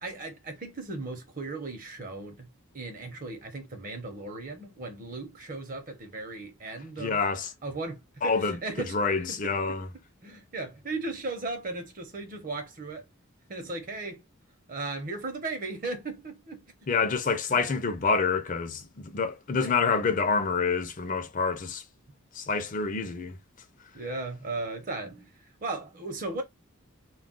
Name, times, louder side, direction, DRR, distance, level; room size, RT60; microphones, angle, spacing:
voice 1, 0.0-7.2 7.6-8.9 9.3-9.8 10.2-13.1 13.5-14.2 14.7-16.6 17.0-17.1 17.5-17.7 19.6-19.8 21.2-21.3 23.0-23.1 23.9-25.3 25.6-26.4, right 3 dB, 40° right, 0.8 m, -37 dB
voice 2, 7.0-7.5 8.2-8.6 8.9-9.9 16.9-21.8 22.3-23.4, left 4 dB, 40° left, 0.5 m, -27 dB
2.3 x 2.2 x 3.6 m
head